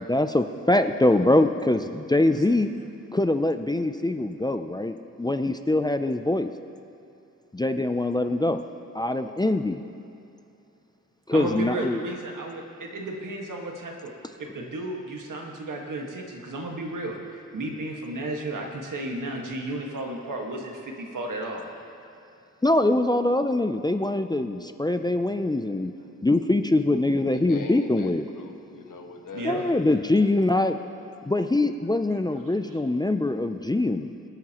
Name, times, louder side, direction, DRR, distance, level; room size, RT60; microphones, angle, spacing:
voice 1, 0.1-2.7 3.1-6.5 7.5-8.6 8.9-9.8 11.3-12.0 22.6-25.9 26.2-28.3 29.4-30.8 31.3-34.1, left 2 dB, 15° left, 8 dB, 0.3 m, -23 dB
voice 2, 11.3-14.1 14.4-17.2 17.5-21.7 29.3-29.6, right 2 dB, 80° right, 0 dB, 1.6 m, -33 dB
voice 3, 27.3-29.7, left 4 dB, 80° left, 3 dB, 1.3 m, -40 dB
24.5 x 8.9 x 2.9 m, 2.7 s
wide cardioid pair, 135°, 31 cm